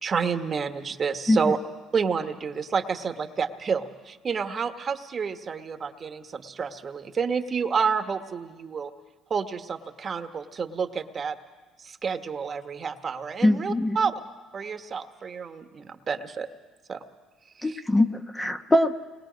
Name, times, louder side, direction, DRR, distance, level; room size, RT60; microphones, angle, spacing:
voice 1, 0.0-1.6 1.9-8.9 9.3-11.4 11.8-14.2 14.5-16.5 16.9-17.0 17.6-17.8, right 6 dB, 35° right, 7 dB, 1.3 m, -29 dB
voice 2, 13.4-14.0 17.6-18.9, left 1 dB, 15° left, 6 dB, 1.0 m, -22 dB
28.5 x 21.0 x 5.2 m, 1.3 s
cardioid pair, 105°, 0 cm